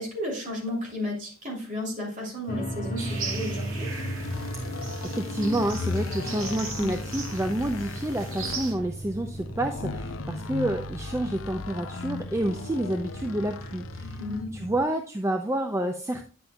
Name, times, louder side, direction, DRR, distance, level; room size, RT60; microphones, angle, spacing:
voice 1, 0.0-3.9 14.2-14.7, left 1 dB, 35° right, -2 dB, 3.0 m, -33 dB
sound 1, 2.5-14.8, right 1 dB, 40° left, 1.1 m, -37 dB
sound 2, 3.0-8.7, right 4 dB, 85° right, 2.2 m, -39 dB
sound 3, 3.7-14.5, left 4 dB, 75° left, 0.5 m, -37 dB
voice 2, 4.5-14.2 14.5-16.3, right 1 dB, 15° right, 5 dB, 0.4 m, -29 dB
9.7 x 7.8 x 2.3 m, 0.39 s
head